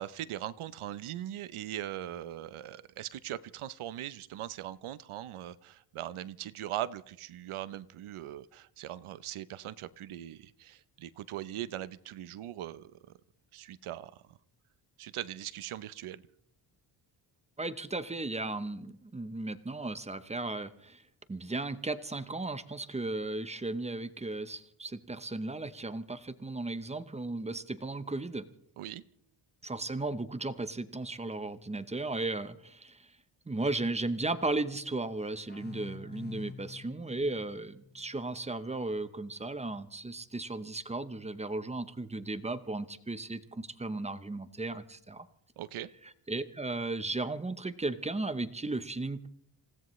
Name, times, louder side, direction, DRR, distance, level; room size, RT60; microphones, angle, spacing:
voice 1, 0.0-13.0 13.5-14.4 15.0-16.2 28.8-29.0 45.6-45.9, right 12 dB, 80° right, 15 dB, 0.8 m, -40 dB
voice 2, 17.6-21.0 21.3-28.5 29.6-33.1 33.5-45.2 46.3-49.3, right 2 dB, 15° right, 12 dB, 0.7 m, -35 dB
sound 1, 35.5-38.9, left 5 dB, 20° left, 1.1 m, -49 dB
27.5 x 16.5 x 3.1 m, 0.71 s
wide cardioid pair, 130°, 49 cm